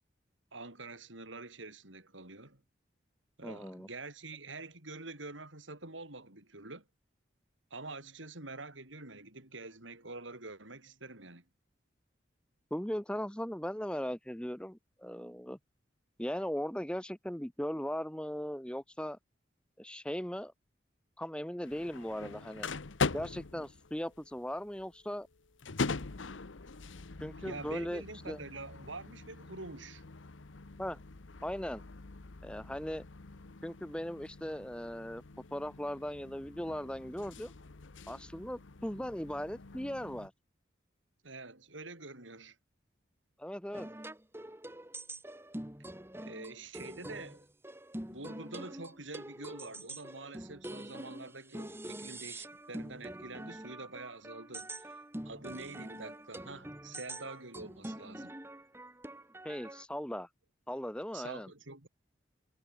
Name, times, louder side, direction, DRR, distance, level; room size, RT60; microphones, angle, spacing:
voice 1, 0.5-2.6 3.4-6.8 7.7-11.4 27.4-30.0 41.2-42.6 46.2-47.5 48.0-55.0 55.2-58.3 61.1-61.9, right 3 dB, 90° right, 6.0 m, -46 dB
voice 2, 3.4-3.9 12.7-15.6 16.2-19.2 19.8-20.5 21.2-22.7 23.1-25.3 27.2-28.4 30.8-31.0 31.4-31.8 32.4-33.0 33.6-35.2 35.5-37.5 38.1-40.3 43.4-43.9 59.4-60.3 60.7-61.5, equal, 5° left, 0.9 m, -38 dB
sound 1, 21.6-40.3, left 4 dB, 90° left, 1.1 m, -42 dB
sound 2, 43.7-59.8, right 1 dB, 10° right, 1.8 m, -45 dB
head